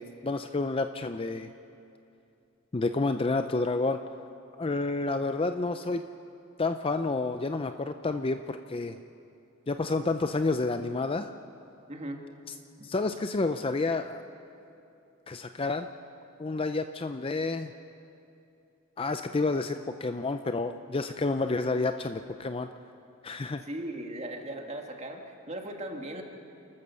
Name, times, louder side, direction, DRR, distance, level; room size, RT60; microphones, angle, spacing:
voice 1, 0.0-1.5 2.7-4.0 4.6-6.0 6.6-9.0 9.7-11.3 12.8-14.2 15.3-15.9 16.4-17.7 19.0-22.7 23.2-23.6, left 3 dB, 25° left, 8 dB, 0.5 m, -29 dB
voice 2, 11.9-12.2 12.8-12.9 23.6-26.2, right 1 dB, 30° right, 2 dB, 1.8 m, -38 dB
29.5 x 13.5 x 6.9 m, 2.7 s
head